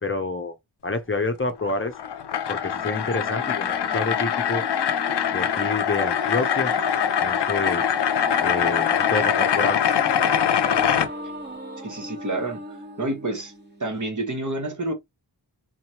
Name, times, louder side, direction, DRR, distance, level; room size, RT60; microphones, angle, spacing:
voice 1, 0.0-0.5 0.8-1.9 2.5-4.6 5.3-6.7 7.2-7.9 8.4-9.8, left 3 dB, 30° left, 0.7 m, -28 dB
sound 1, 1.6-11.1, left 8 dB, 70° left, 0.6 m, -23 dB
sound 2, 2.7-14.1, right 1 dB, 25° right, 1.4 m, -39 dB
Wind instrument woodwind instrument, 5.9-10.2, right 12 dB, 60° right, 0.6 m, -41 dB
voice 2, 11.8-12.6 13.0-13.5 13.8-14.9, right 2 dB, 45° right, 1.3 m, -28 dB
3.9 x 3.0 x 3.0 m
wide cardioid pair, 55°, 43 cm